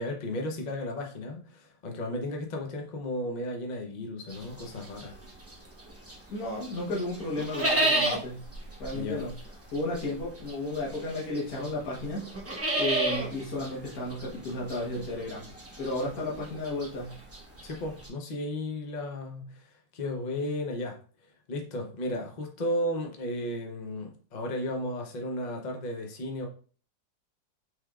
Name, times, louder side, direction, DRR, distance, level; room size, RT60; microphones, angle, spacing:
voice 1, 0.0-5.2 8.9-9.2 17.6-21.0 21.5-26.5, left 1 dB, 75° left, 1 dB, 0.4 m, -34 dB
sound 1, 4.3-6.3 6.6-18.1, right 1 dB, 10° right, 0.6 m, -32 dB
voice 2, 6.3-8.4 8.8-9.3 9.7-12.3 12.7-15.5 15.8-17.2, left 1 dB, 55° left, -5 dB, 1.7 m, -33 dB
6.0 x 3.6 x 2.4 m, 0.42 s
omnidirectional pair, 2.0 m